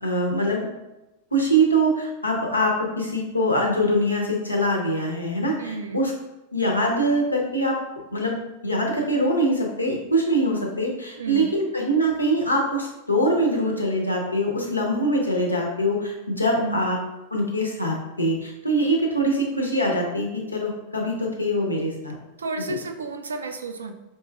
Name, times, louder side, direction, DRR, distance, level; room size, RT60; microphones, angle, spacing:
voice 1, 0.0-0.6 1.3-6.1 6.5-7.8 8.1-8.4 8.6-17.0 17.3-22.2 22.7-22.8, right 1 dB, 85° left, -1 dB, 0.7 m, -23 dB
voice 2, 5.6-6.0 11.2-11.5 16.4-16.8 22.4-23.9, right 3 dB, 70° right, 6 dB, 0.3 m, -32 dB
4.4 x 3.0 x 2.3 m, 1.0 s
figure-of-eight pair, 90°, 0 cm